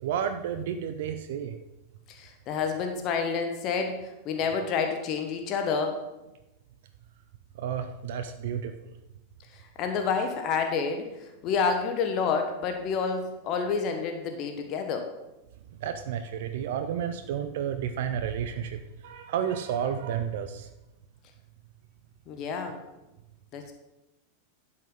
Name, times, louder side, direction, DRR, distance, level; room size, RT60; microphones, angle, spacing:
voice 1, 0.0-1.5 7.6-8.9 15.8-20.7, right 8 dB, 55° right, 8 dB, 0.6 m, -31 dB
voice 2, 2.1-3.9 4.2-6.0 9.8-15.1 22.3-22.8 23.5-23.7, left 5 dB, 35° left, 5 dB, 1.2 m, -29 dB
12.0 x 7.7 x 3.9 m, 0.98 s
figure-of-eight pair, 90°, 0 cm